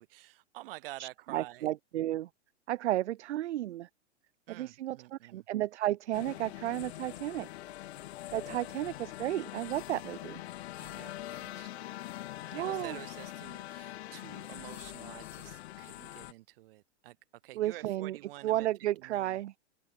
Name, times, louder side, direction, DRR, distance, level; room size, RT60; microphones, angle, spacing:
voice 1, 0.0-1.7 4.5-5.4 10.8-11.9 12.5-17.2 17.4-18.7 19.0-19.4, right 18 dB, 55° right, 1.6 m, -49 dB
voice 2, 1.0-2.3 2.7-3.9 4.5-7.5 8.3-10.4 12.5-13.0 17.6-18.2 18.4-19.5, right 14 dB, 75° right, 0.5 m, -33 dB
sound 1, 6.1-16.3, left 15 dB, 65° left, 0.5 m, -43 dB
open air
hypercardioid pair, 115°, 35 cm